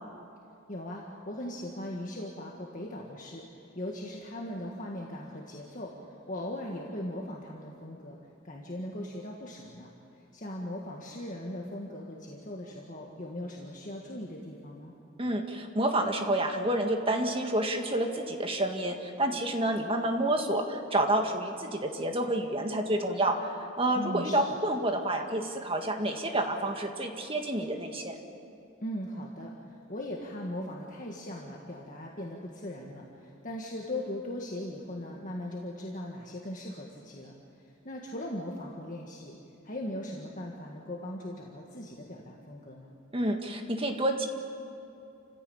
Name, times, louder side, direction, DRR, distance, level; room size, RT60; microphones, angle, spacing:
voice 1, 0.7-3.4 3.8-5.9 6.3-8.2 8.4-9.9 10.1-14.9 23.9-24.6 28.8-37.3 37.6-39.4 39.6-43.0, left 1 dB, 40° left, -1 dB, 1.8 m, -39 dB
voice 2, 15.2-28.2 43.1-44.3, right 1 dB, 25° right, 4 dB, 1.9 m, -29 dB
29.0 x 15.5 x 8.8 m, 2.6 s
head